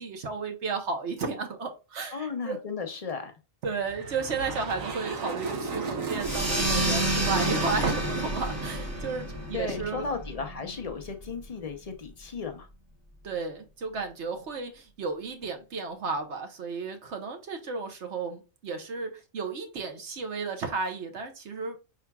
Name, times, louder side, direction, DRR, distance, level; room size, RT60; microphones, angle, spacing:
voice 1, 0.0-2.6 3.6-10.0 13.2-21.8, right 4 dB, 60° right, 1.2 m, -33 dB
voice 2, 2.1-3.3 9.5-12.7, left 5 dB, 35° left, 0.6 m, -35 dB
sound 1, 3.7-10.1, right 4 dB, 75° right, 1.3 m, -36 dB
sound 2, 6.2-11.3, right 1 dB, 15° right, 0.8 m, -30 dB
5.6 x 3.7 x 2.3 m
omnidirectional pair, 1.4 m